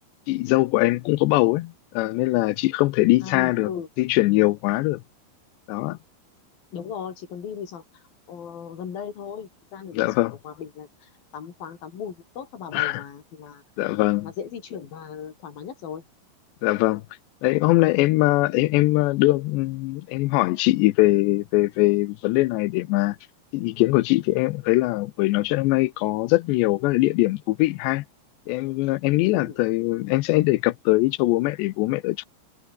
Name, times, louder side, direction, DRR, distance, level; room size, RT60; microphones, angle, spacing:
voice 1, 0.3-3.7 4.0-5.0 5.7-6.0 9.9-10.3 12.7-13.0 13.8-14.3 16.6-17.0 17.4-23.2 23.5-28.0 28.5-32.3, left 20 dB, 90° left, 3.0 m, -22 dB
voice 2, 3.2-3.9 6.7-13.6 14.2-16.0 29.3-29.6, left 7 dB, 60° left, 5.1 m, -37 dB
omnidirectional pair, 4.9 m